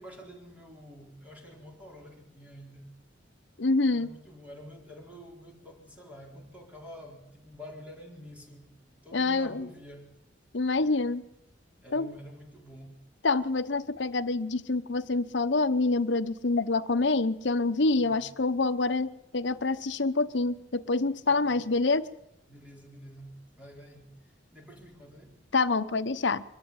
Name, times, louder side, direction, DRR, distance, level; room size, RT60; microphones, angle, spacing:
voice 1, 0.0-3.0 3.9-10.1 10.8-11.0 11.8-13.0 18.0-18.3 21.3-21.6 22.5-25.4, equal, 10° right, 0 dB, 4.3 m, -48 dB
voice 2, 3.6-4.1 9.1-9.7 10.5-11.2 11.9-12.1 13.2-22.1 25.5-26.4, left 3 dB, 75° left, 12 dB, 0.9 m, -26 dB
23.5 x 13.5 x 8.8 m, 0.82 s
head